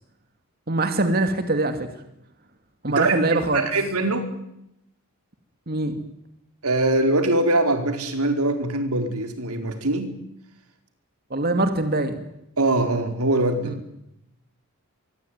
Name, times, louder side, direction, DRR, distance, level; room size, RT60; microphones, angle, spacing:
voice 1, 0.7-1.9 2.8-3.6 5.7-5.9 11.3-12.2 13.6-13.8, right 2 dB, 45° right, 7 dB, 2.5 m, -23 dB
voice 2, 2.9-4.3 6.6-10.1 12.6-13.8, right 2 dB, 90° right, 6 dB, 4.7 m, -23 dB
25.5 x 23.5 x 9.5 m, 0.81 s
head